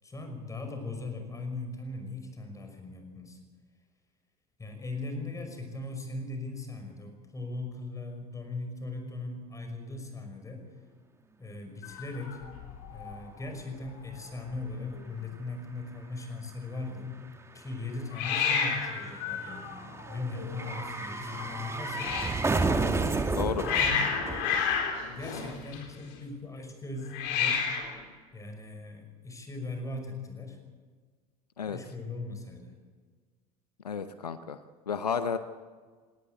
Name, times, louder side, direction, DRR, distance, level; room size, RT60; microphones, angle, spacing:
voice 1, 0.0-3.4 4.6-10.7 11.4-12.4 12.9-17.2 17.5-19.8 20.1-22.4 23.6-24.1 25.1-27.6 28.3-30.6 31.7-32.7, left 3 dB, 15° left, 5 dB, 5.7 m, -39 dB
Hiss, 11.8-13.2 13.4-13.9 14.2-14.3 14.4-15.1 18.1-22.4 23.2-26.1 27.1-28.0, left 6 dB, 60° left, 4.1 m, -32 dB
sound 1, 14.5-14.6 14.8-25.2 25.5-25.6, right 3 dB, 15° right, 2.1 m, -33 dB
voice 2, 23.3-23.7 31.6-31.8 33.8-34.6 34.9-35.4, left 6 dB, 85° left, 12 dB, 0.8 m, -31 dB
19.5 x 17.5 x 8.2 m, 1.5 s
figure-of-eight pair, 75°, 20 cm